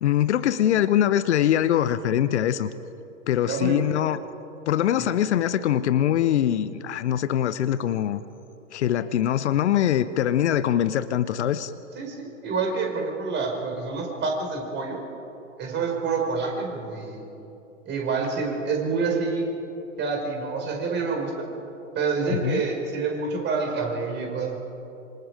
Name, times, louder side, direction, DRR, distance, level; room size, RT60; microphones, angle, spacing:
voice 1, 0.0-2.7 3.3-4.2 4.7-8.2 8.7-11.7 22.3-22.6, left 11 dB, 60° left, 13 dB, 0.9 m, -23 dB
voice 2, 3.4-3.8 5.0-5.1 11.9-15.0 15.6-17.2 17.9-19.5 20.0-21.3 21.9-24.6, right 4 dB, 25° right, 1 dB, 5.3 m, -27 dB
26.5 x 26.0 x 5.0 m, 2.9 s
figure-of-eight pair, 100°, 38 cm